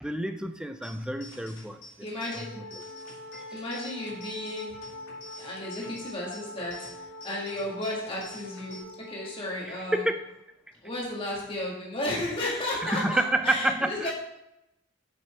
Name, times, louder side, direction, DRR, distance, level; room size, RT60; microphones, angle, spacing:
voice 1, 0.0-1.8 3.3-3.6 9.9-10.2 12.8-14.1, right 1 dB, 5° right, 7 dB, 0.4 m, -28 dB
sound 1, 0.8-8.8, left 1 dB, 70° left, 2.0 m, -49 dB
voice 2, 2.0-2.4 3.5-4.8 5.4-8.8 9.1-10.0 10.8-14.1, left 1 dB, 25° left, -4 dB, 1.9 m, -33 dB
Wind instrument woodwind instrument, 2.3-10.3, left 1 dB, 45° right, 1.4 m, -44 dB
6.8 x 6.0 x 4.4 m, 0.88 s
head